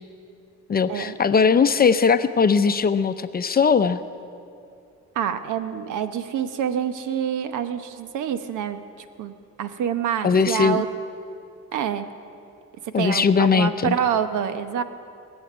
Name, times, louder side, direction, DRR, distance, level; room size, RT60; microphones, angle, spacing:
voice 1, 0.7-4.0 10.2-10.8 12.9-14.0, left 5 dB, 30° left, 11 dB, 0.6 m, -19 dB
voice 2, 5.1-8.8 9.2-10.9 11.7-12.0 13.0-14.8, right 8 dB, 80° right, 10 dB, 1.0 m, -26 dB
19.5 x 7.2 x 9.5 m, 2.5 s
cardioid pair, 90°, 30 cm